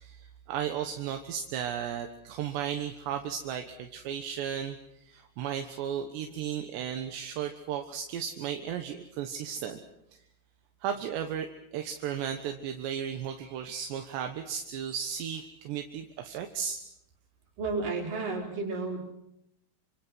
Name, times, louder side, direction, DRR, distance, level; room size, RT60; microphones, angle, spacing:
voice 1, 0.0-9.8 10.1-10.2 10.8-16.8, right 8 dB, 80° right, 5 dB, 3.5 m, -35 dB
voice 2, 17.6-19.1, right 3 dB, 50° right, 1 dB, 6.2 m, -32 dB
27.5 x 25.5 x 6.3 m, 0.81 s
omnidirectional pair, 5.0 m